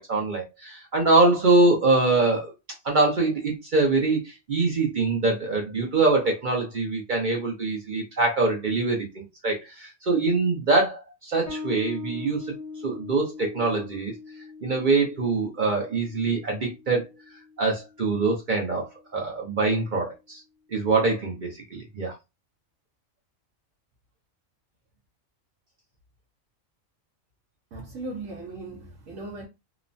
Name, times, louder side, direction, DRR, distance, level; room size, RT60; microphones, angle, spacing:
voice 1, 0.0-2.5 2.8-12.5 12.8-14.1 14.6-17.1 17.6-18.9 19.1-20.4 20.7-22.1, right 3 dB, 50° right, 0.6 m, -24 dB
Bass guitar, 11.5-18.6, left 4 dB, 80° left, 1.4 m, -41 dB
voice 2, 27.7-29.5, right 2 dB, 75° right, 1.0 m, -37 dB
3.0 x 2.0 x 2.5 m
omnidirectional pair, 1.4 m